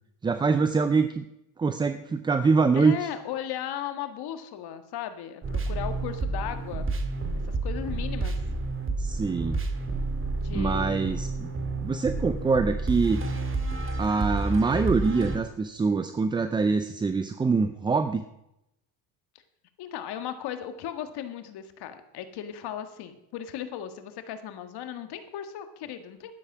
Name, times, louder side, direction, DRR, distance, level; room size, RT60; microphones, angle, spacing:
voice 1, 0.2-1.3 1.6-3.1 9.0-9.6 10.5-11.5 11.8-13.2 14.0-18.2, right 4 dB, 10° right, 10 dB, 0.4 m, -24 dB
voice 2, 2.7-6.9 7.5-8.4 10.4-11.2 19.8-26.3, left 10 dB, 55° left, 8 dB, 1.7 m, -36 dB
sound 1, 5.4-15.4, right 2 dB, 25° right, 1.9 m, -30 dB
11.5 x 10.0 x 6.0 m, 0.84 s
supercardioid pair, 110°, 47 cm